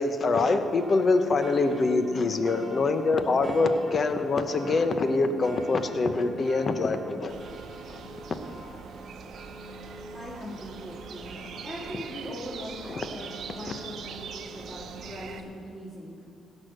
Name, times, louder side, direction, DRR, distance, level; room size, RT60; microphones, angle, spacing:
voice 1, 0.0-7.4 7.9-8.0 12.9-13.1, left 3 dB, 45° left, 9 dB, 0.9 m, -25 dB
sound 1, 0.8-15.3, right 1 dB, 15° right, 2.3 m, -44 dB
sound 2, 7.3-15.4, right 7 dB, 65° right, 0.8 m, -42 dB
voice 2, 10.1-11.3 11.6-16.2, equal, 15° left, -6 dB, 2.8 m, -40 dB
16.5 x 6.4 x 6.5 m, 2.4 s
cardioid pair, 90°, 0 cm